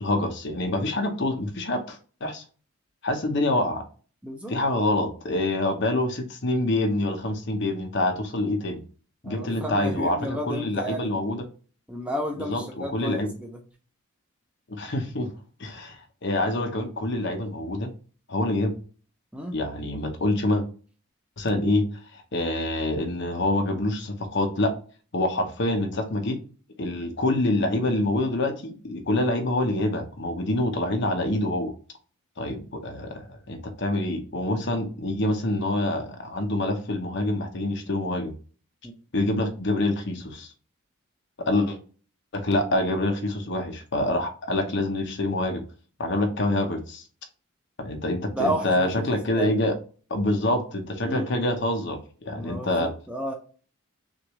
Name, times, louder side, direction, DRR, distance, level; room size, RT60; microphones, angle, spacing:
voice 1, 0.0-2.4 3.0-3.8 4.5-8.8 9.2-11.4 12.4-13.3 14.7-15.3 15.6-17.9 18.3-18.7 19.5-20.6 21.4-21.9 22.1-24.7 25.1-26.4 26.8-31.7 32.4-38.3 39.1-40.5 41.4-41.8 42.3-45.6 46.0-47.0 47.8-49.7 50.1-52.9, left 1 dB, 50° left, 6 dB, 0.8 m, -26 dB
voice 2, 4.2-4.5 9.2-11.1 11.9-13.6 19.3-19.5 38.8-38.9 48.3-49.5 51.0-51.3 52.4-53.3, equal, 5° right, 2 dB, 0.7 m, -32 dB
6.2 x 2.5 x 3.0 m, 0.39 s
head